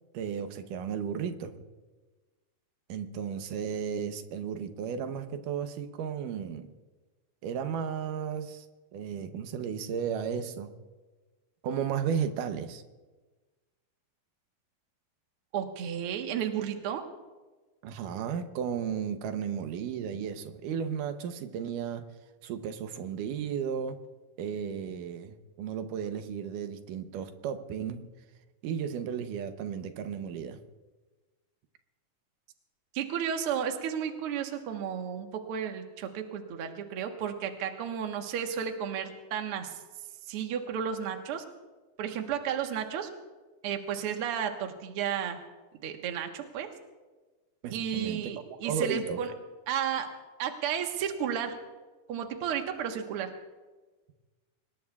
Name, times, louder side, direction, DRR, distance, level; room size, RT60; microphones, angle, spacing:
voice 1, 0.1-1.6 2.9-6.7 7.4-8.7 8.9-10.7 11.6-12.8 17.8-22.0 22.4-24.0 24.4-28.1 28.6-30.6 47.6-48.2 48.6-49.2, right 7 dB, 90° right, 8 dB, 2.5 m, -34 dB
voice 2, 15.5-17.0 32.9-39.7 40.3-41.4 42.0-43.1 43.6-45.4 45.8-46.7 47.7-49.3 49.7-50.1 50.4-51.6 52.1-53.3, right 8 dB, 55° right, 4 dB, 1.8 m, -33 dB
25.0 x 19.5 x 2.4 m, 1.3 s
omnidirectional pair, 3.6 m